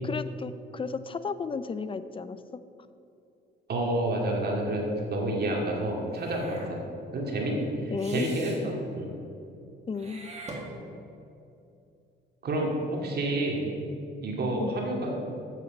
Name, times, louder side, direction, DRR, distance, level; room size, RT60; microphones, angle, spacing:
voice 1, 0.0-2.4 7.9-8.4 9.9-10.4 14.6-14.8, left 5 dB, 25° left, 13 dB, 0.5 m, -33 dB
voice 2, 3.7-6.8 7.1-9.1 12.4-13.6 14.2-15.1, right 1 dB, 55° right, -1 dB, 2.2 m, -29 dB
Meow / Hiss, 6.1-6.7 8.0-8.6 9.9-11.2, right 2 dB, 35° right, 1.7 m, -43 dB
8.2 x 7.1 x 5.3 m, 2.7 s
cardioid pair, 90°, 20 cm